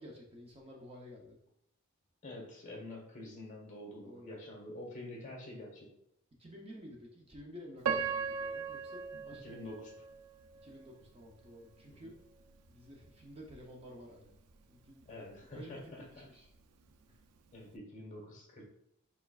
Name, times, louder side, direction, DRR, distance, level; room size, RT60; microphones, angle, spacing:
voice 1, 0.0-1.4 4.0-4.3 6.4-9.7 10.6-12.2 12.7-14.3 14.7-15.1 15.5-16.5 17.1-17.2, equal, 25° right, -1 dB, 0.6 m, -52 dB
voice 2, 2.2-5.9 9.1-9.9 11.9-12.1 15.0-16.3 17.5-18.6, left 1 dB, 35° left, -1 dB, 1.2 m, -47 dB
Piano, 7.8-10.8 11.4-11.5 12.2-12.4, right 6 dB, 90° right, 0.4 m, -37 dB
4.6 x 4.3 x 2.3 m, 0.77 s
head